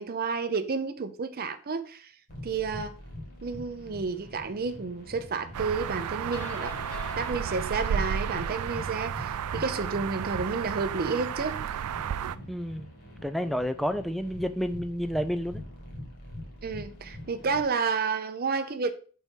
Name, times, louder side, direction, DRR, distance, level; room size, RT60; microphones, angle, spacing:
voice 1, 0.0-2.1 2.4-2.9 3.4-6.8 7.2-11.6 16.6-18.9, right 4 dB, 45° right, 0.6 m, -31 dB
sound 1, 2.3-17.6, left 1 dB, 45° left, 2.1 m, -44 dB
sound 2, 5.5-12.4, right 8 dB, 90° right, 0.4 m, -33 dB
sound 3, 6.3-9.6, left 7 dB, 70° left, 0.6 m, -46 dB
voice 2, 12.5-12.9 13.2-15.6, equal, ahead, 0.4 m, -30 dB
4.7 x 4.3 x 5.2 m
head